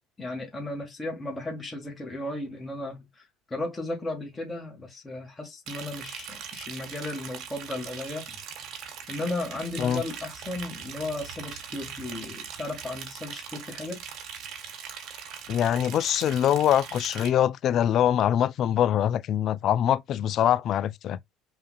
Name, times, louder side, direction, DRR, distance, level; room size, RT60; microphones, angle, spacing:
voice 1, 0.2-3.2 3.5-8.4 9.1-14.0, left 2 dB, 20° left, 1.4 m, -35 dB
Liquid, 5.7-17.3, right 7 dB, 60° right, 1.1 m, -41 dB
voice 2, 15.5-21.2, left 10 dB, 55° left, 0.3 m, -24 dB
5.5 x 2.5 x 2.3 m
supercardioid pair, 85°, 0 cm